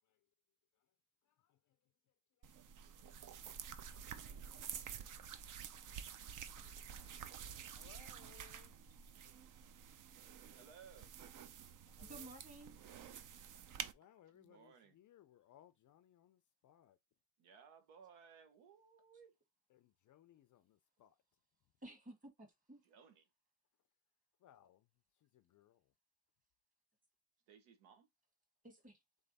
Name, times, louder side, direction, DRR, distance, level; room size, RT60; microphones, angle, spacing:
sound 1, 2.4-13.9, right 8 dB, 40° right, 0.5 m, -50 dB
voice 1, 4.0-4.7 5.0-5.4 6.6-7.3 7.7-8.8 9.1-9.5 11.9-12.3 13.9-17.0 19.7-21.1 24.4-24.9 25.2-25.8, left 11 dB, 40° left, 0.4 m, -66 dB
voice 2, 10.6-11.1 14.3-15.0 17.4-19.3 22.8-23.2 27.5-28.1, right 6 dB, 80° right, 1.2 m, -61 dB
voice 3, 12.0-12.7 21.8-22.8 28.6-29.0, right 1 dB, 15° right, 1.7 m, -54 dB
3.5 x 3.3 x 4.0 m
cardioid pair, 125°, 48 cm